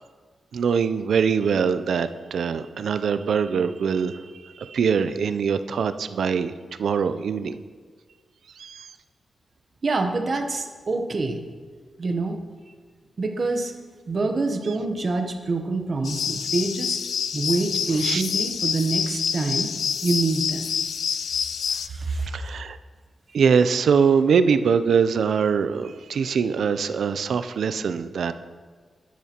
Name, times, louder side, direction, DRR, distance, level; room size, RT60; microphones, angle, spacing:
voice 1, 0.5-6.5 6.8-7.6 8.6-8.9 18.0-18.2 22.3-22.8 23.3-28.3, right 6 dB, 75° right, 12 dB, 0.4 m, -23 dB
voice 2, 9.8-11.4 12.0-12.4 13.2-13.7 14.1-17.0 17.3-19.7 20.0-20.8 21.3-22.3, right 3 dB, 40° right, 5 dB, 0.8 m, -26 dB
sound 1, 16.0-21.9, left 7 dB, 80° left, 0.3 m, -27 dB
10.5 x 10.0 x 2.9 m, 1.5 s
wide cardioid pair, 145°, 0 cm